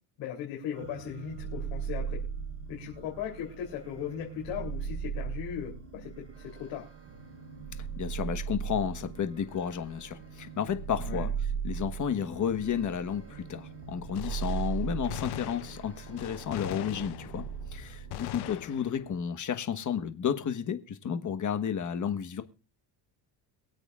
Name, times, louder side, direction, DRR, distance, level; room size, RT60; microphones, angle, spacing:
voice 1, 0.2-2.2 2.7-6.9 11.0-11.3 18.8-19.0, left 9 dB, 90° left, 3.3 m, -38 dB
sound 1, 0.7-18.6, right 7 dB, 30° right, 3.9 m, -38 dB
voice 2, 8.0-11.3 11.6-17.5 17.7-22.4, left 8 dB, 40° left, 1.3 m, -32 dB
Gunshot gunfire, 14.1-17.7 18.1-19.2, left 15 dB, 65° left, 0.7 m, -41 dB
23.0 x 8.1 x 2.4 m
cardioid pair, 100°, 44 cm